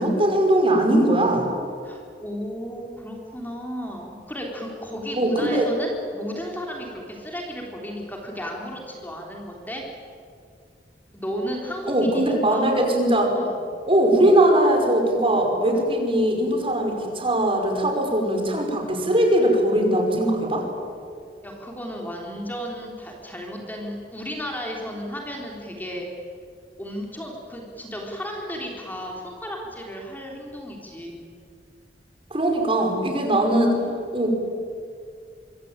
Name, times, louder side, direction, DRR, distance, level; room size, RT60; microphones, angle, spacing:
voice 1, 0.0-1.5 5.2-5.7 11.9-13.3 13.9-20.6 32.3-33.8 34.1-34.3, right 1 dB, 30° right, 3 dB, 5.5 m, -20 dB
voice 2, 1.8-9.8 11.1-12.6 13.3-13.5 21.4-26.1 26.8-31.2, equal, 10° left, 0 dB, 3.9 m, -34 dB
26.0 x 25.0 x 9.1 m, 2.3 s
head